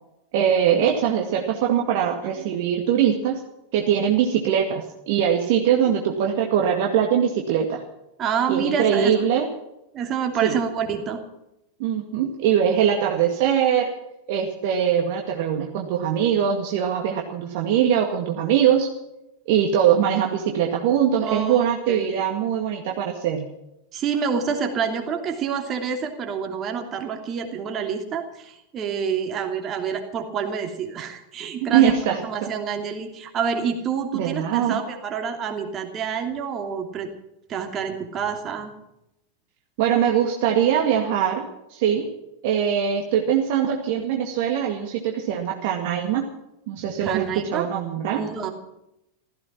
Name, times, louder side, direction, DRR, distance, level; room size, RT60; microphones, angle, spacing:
voice 1, 0.3-3.4 3.7-7.8 8.5-9.5 10.4-10.6 11.8-13.9 14.3-18.9 19.5-23.5 31.7-32.5 34.1-34.8 39.8-41.5 41.7-42.1 42.4-46.3 46.7-48.2, right 9 dB, 50° right, 2 dB, 2.0 m, -22 dB
voice 2, 8.2-9.1 9.9-11.2 21.2-22.0 23.9-31.9 32.2-37.1 37.5-38.7 46.8-47.7 48.1-48.5, right 6 dB, 30° right, 4 dB, 2.9 m, -28 dB
16.0 x 15.0 x 5.9 m, 0.87 s
figure-of-eight pair, 90°, 0 cm